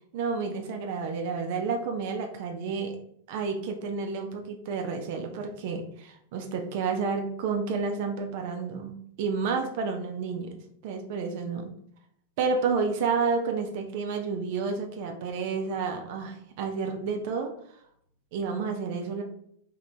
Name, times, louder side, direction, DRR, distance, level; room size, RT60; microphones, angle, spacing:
voice 1, 0.1-3.0 3.3-11.7 12.4-17.5 18.3-19.2, right 5 dB, 50° right, 4 dB, 0.6 m, -30 dB
3.8 x 2.9 x 3.3 m, 0.67 s
figure-of-eight pair, 90°, 0 cm